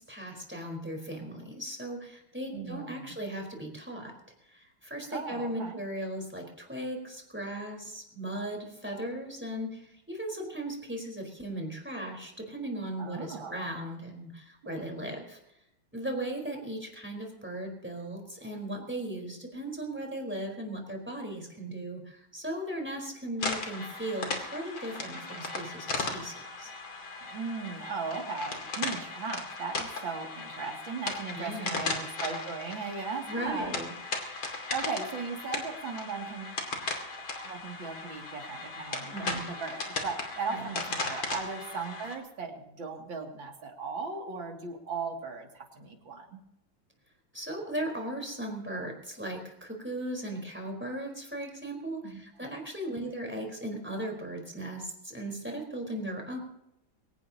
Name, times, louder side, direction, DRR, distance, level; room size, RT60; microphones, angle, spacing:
voice 1, 0.1-4.1 4.5-9.8 10.1-15.4 15.9-26.7 31.3-31.9 33.3-33.9 39.1-39.4 40.5-40.6 47.3-56.4, right 1 dB, 5° right, 1 dB, 4.2 m, -37 dB
voice 2, 2.5-3.1 5.1-5.8 13.0-13.7 14.6-14.9 27.3-33.7 34.7-36.6 37.4-46.4 52.0-52.2 52.9-53.1, right 4 dB, 65° right, 1 dB, 3.3 m, -37 dB
sound 1, 23.4-42.2, left 3 dB, 70° left, 3.4 m, -37 dB
23.0 x 18.0 x 2.9 m, 0.84 s
omnidirectional pair, 2.3 m